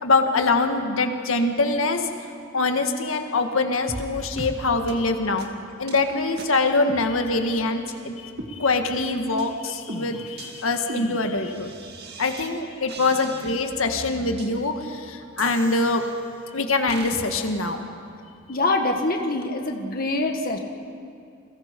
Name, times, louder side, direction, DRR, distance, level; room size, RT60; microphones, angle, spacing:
voice 1, 0.0-2.1 2.5-5.5 5.8-11.7 12.2-16.0 16.5-17.9, left 3 dB, 90° left, 5 dB, 1.7 m, -24 dB
sound 1, 3.9-4.1 4.4-4.6 4.9-5.0 5.4-5.5 5.9-6.0 6.4-6.5 6.9-7.5 7.9-8.0 8.4-9.0 9.4-9.5 9.9-12.5 12.9-13.8 14.4-14.5 15.4-16.3 16.9-17.2, right 2 dB, 50° right, 2.0 m, -38 dB
voice 2, 18.5-20.6, left 2 dB, 45° left, 3 dB, 1.7 m, -24 dB
29.5 x 22.5 x 5.3 m, 2.4 s
head